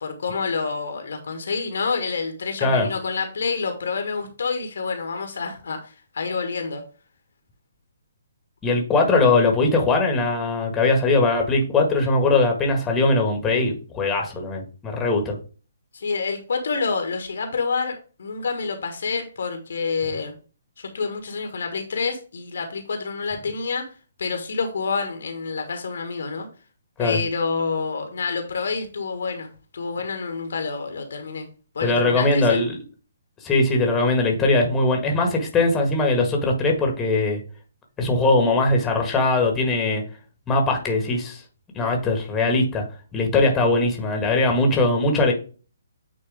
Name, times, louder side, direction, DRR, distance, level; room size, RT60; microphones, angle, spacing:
voice 1, 0.0-6.8 15.9-20.3 20.8-26.5 27.0-31.5 31.7-32.6, left 4 dB, 55° left, 5 dB, 1.5 m, -28 dB
voice 2, 2.6-2.9 8.6-15.4 27.0-27.2 31.8-32.7 33.4-37.4 38.0-40.0 40.5-41.4 41.7-42.8 43.1-45.3, left 2 dB, 10° left, 2 dB, 1.7 m, -20 dB
8.8 x 4.2 x 3.5 m, 0.36 s
figure-of-eight pair, 130°, 0 cm